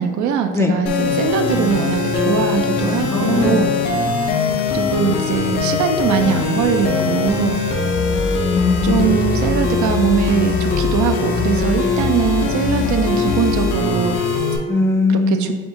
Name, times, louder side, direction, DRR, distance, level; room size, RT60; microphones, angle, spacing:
voice 1, 0.0-3.7 4.7-7.6 8.8-14.2 15.1-15.5, right 7 dB, 70° right, 6 dB, 0.5 m, -21 dB
sound 1, 0.9-14.6, left 4 dB, 85° left, 0.6 m, -20 dB
voice 2, 3.1-4.1 8.4-9.2 14.7-15.5, left 3 dB, 10° left, 2 dB, 0.4 m, -19 dB
4.7 x 2.6 x 3.6 m, 1.4 s
cardioid pair, 90°, 30 cm